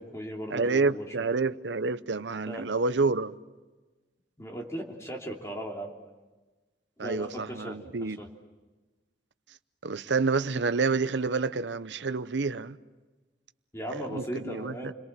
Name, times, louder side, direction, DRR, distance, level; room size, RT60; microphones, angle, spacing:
voice 1, 0.0-1.1 2.5-2.7 4.4-5.9 7.0-8.3 13.7-14.9, equal, 15° left, 3.0 m, -38 dB
voice 2, 0.5-3.3 7.0-8.2 9.8-12.8 13.9-14.9, right 4 dB, 85° right, 0.8 m, -28 dB
29.5 x 22.0 x 7.5 m
head